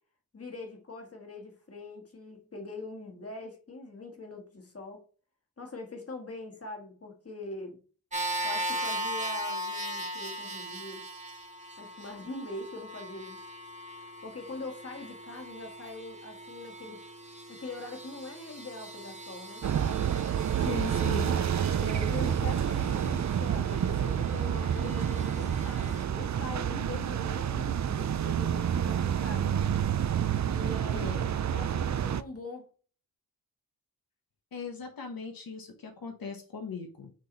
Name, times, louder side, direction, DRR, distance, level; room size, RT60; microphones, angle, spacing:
voice 1, 0.3-5.1 5.6-7.8 8.4-11.2 11.8-13.4 13.9-19.7 21.7-29.6 30.5-32.7, left 2 dB, 40° left, 1.8 m, -43 dB
sound 1, 8.1-26.0, right 1 dB, 20° right, 1.5 m, -39 dB
sound 2, 19.6-32.2, right 9 dB, 55° right, 0.4 m, -29 dB
voice 2, 20.6-21.3 30.9-31.2 34.5-37.1, left 5 dB, 75° left, 1.1 m, -39 dB
6.3 x 4.0 x 4.0 m
wide cardioid pair, 105°, 35 cm